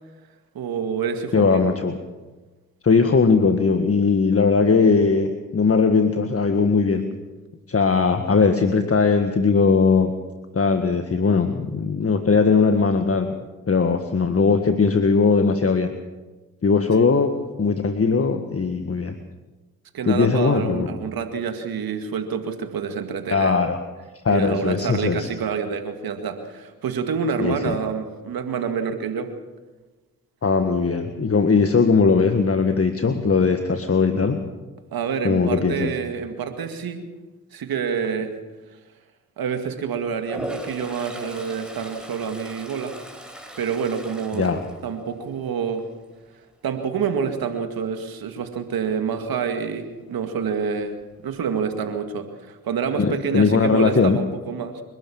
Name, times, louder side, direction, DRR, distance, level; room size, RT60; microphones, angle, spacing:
voice 1, 0.5-1.6 19.9-23.6 24.3-29.3 34.9-37.1 37.5-38.3 39.4-42.9 43.6-44.5 44.8-45.8 46.6-51.0 51.2-54.8, right 6 dB, 70° right, 7 dB, 2.2 m, -27 dB
voice 2, 1.3-2.0 2.8-7.0 7.7-10.1 10.5-13.4 13.7-15.9 16.6-17.3 17.6-19.2 20.1-20.9 23.3-23.8 24.2-25.3 27.4-27.8 30.4-34.4 35.2-35.9 44.3-44.6 52.9-54.2, left 4 dB, 40° left, 7 dB, 1.7 m, -19 dB
Toilet flush, 40.2-45.4 45.8-46.2 50.6-50.7 51.0-51.7, equal, ahead, 5.1 m, -38 dB
29.0 x 12.5 x 7.2 m, 1.2 s
supercardioid pair, 45°, 37 cm